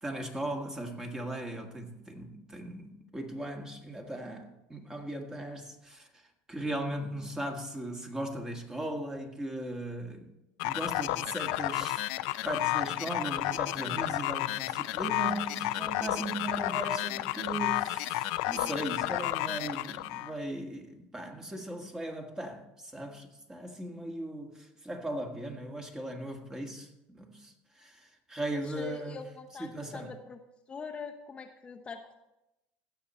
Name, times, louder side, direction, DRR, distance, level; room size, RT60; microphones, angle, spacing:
voice 1, 0.0-10.3 10.6-12.1 12.4-29.2 29.6-30.1, right 1 dB, 15° right, 1.7 m, -38 dB
sound 1, 10.6-20.3, left 17 dB, 75° left, 0.5 m, -32 dB
voice 2, 28.5-30.4 30.7-32.1, left 4 dB, 25° left, 0.8 m, -43 dB
16.0 x 6.8 x 4.3 m
supercardioid pair, 105°, 4 cm